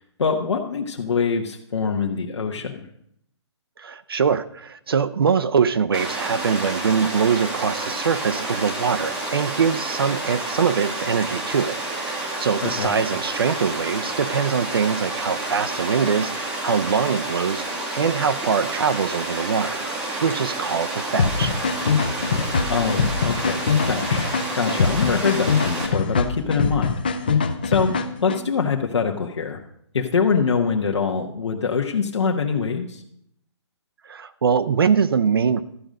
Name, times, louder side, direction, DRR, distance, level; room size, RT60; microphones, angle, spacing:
voice 1, 0.0-2.9 12.6-12.9 22.3-27.0 27.2-29.6 29.9-33.0, left 5 dB, 75° left, 1 dB, 1.2 m, -24 dB
voice 2, 3.8-17.6 17.9-19.9 20.2-21.5 21.8-22.0 34.0-35.6, right 6 dB, 55° right, 12 dB, 0.5 m, -23 dB
Water, 5.9-25.9, right 2 dB, 5° right, 0.7 m, -29 dB
sound 1, 21.2-28.4, left 5 dB, 20° left, 0.4 m, -23 dB
13.0 x 5.2 x 7.6 m, 0.73 s
hypercardioid pair, 180°, 15 cm